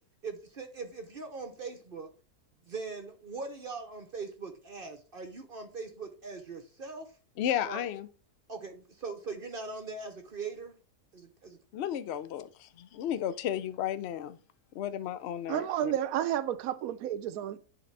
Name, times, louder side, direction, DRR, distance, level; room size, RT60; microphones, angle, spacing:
voice 1, 0.2-2.1 2.6-7.2 7.6-7.8 8.5-10.8 11.1-11.6, right 4 dB, 45° right, 0.8 m, -41 dB
voice 2, 7.4-8.1 11.7-14.4 14.7-15.9, left 10 dB, 70° left, 0.6 m, -33 dB
voice 3, 15.5-17.6, right 11 dB, 70° right, 1.0 m, -31 dB
11.0 x 3.8 x 3.3 m
omnidirectional pair, 1.7 m